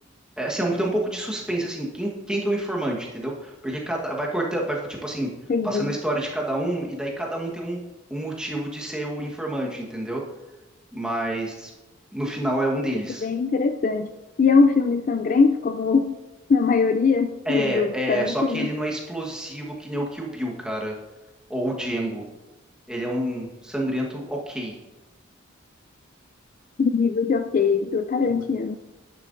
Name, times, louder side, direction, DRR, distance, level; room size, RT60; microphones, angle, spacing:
voice 1, 0.4-5.3 5.6-7.8 8.1-10.2 10.9-11.7 12.1-13.3 17.4-20.9 21.5-22.2 22.9-24.8 28.3-28.4, right 1 dB, 5° right, -2 dB, 1.3 m, -28 dB
voice 2, 5.5-5.9 13.2-14.1 14.4-16.2 16.5-18.7 26.8-28.8, left 4 dB, 40° left, 8 dB, 0.3 m, -21 dB
10.5 x 10.0 x 2.6 m, 1.1 s
head